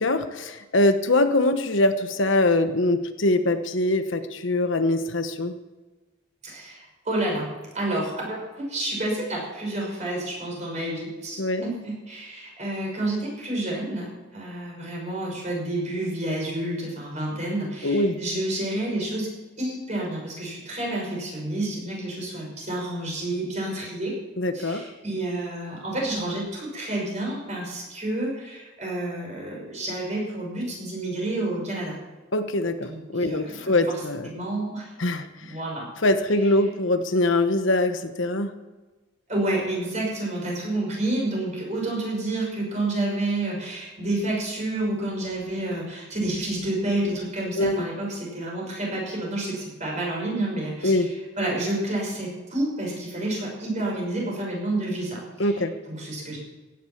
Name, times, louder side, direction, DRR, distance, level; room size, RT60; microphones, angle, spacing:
voice 1, 0.0-5.5 11.4-11.6 17.8-18.2 24.4-24.8 32.3-34.3 35.0-35.3 36.0-38.5 47.6-47.8 50.8-51.1 55.4-55.7, left 2 dB, 70° left, 8 dB, 1.1 m, -23 dB
voice 2, 6.4-19.3 19.6-24.1 24.5-31.9 32.8-34.9 35.4-35.9 39.3-56.4, right 1 dB, 35° right, -2 dB, 5.9 m, -29 dB
16.0 x 10.5 x 5.8 m, 1.2 s
head